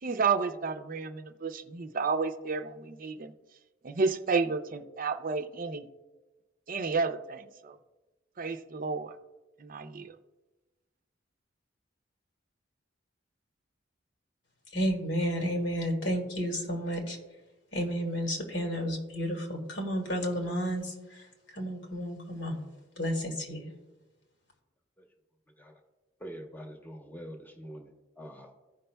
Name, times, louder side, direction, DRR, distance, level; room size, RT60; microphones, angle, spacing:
voice 1, 0.0-3.3 3.8-5.9 6.7-7.8 8.4-9.1 9.6-10.2, right 4 dB, 50° right, 8 dB, 0.5 m, -31 dB
voice 2, 14.7-17.2 17.7-21.2 21.5-22.6 23.0-23.7, equal, 80° left, 1 dB, 1.8 m, -31 dB
voice 3, 26.2-27.9 28.2-28.5, equal, 10° left, 2 dB, 0.9 m, -44 dB
15.5 x 5.3 x 2.2 m, 1.2 s
head